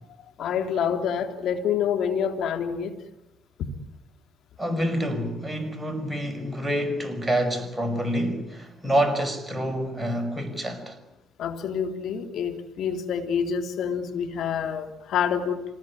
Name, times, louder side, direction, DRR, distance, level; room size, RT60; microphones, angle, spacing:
voice 1, 0.4-2.9 11.4-15.6, left 7 dB, 70° left, 2.9 m, -27 dB
voice 2, 4.6-11.0, equal, 5° right, 5.5 m, -27 dB
26.0 x 19.0 x 9.9 m
supercardioid pair, 70°, 0 cm